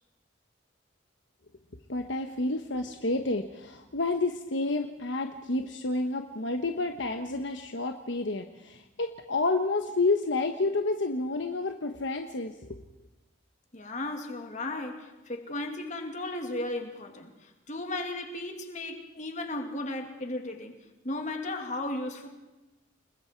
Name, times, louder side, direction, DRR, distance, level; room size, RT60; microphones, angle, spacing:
voice 1, 1.9-12.8, left 2 dB, 65° left, 5 dB, 1.2 m, -30 dB
voice 2, 13.7-20.7 21.0-22.3, left 2 dB, 40° left, 3 dB, 2.6 m, -35 dB
30.0 x 20.0 x 4.6 m, 1.0 s
head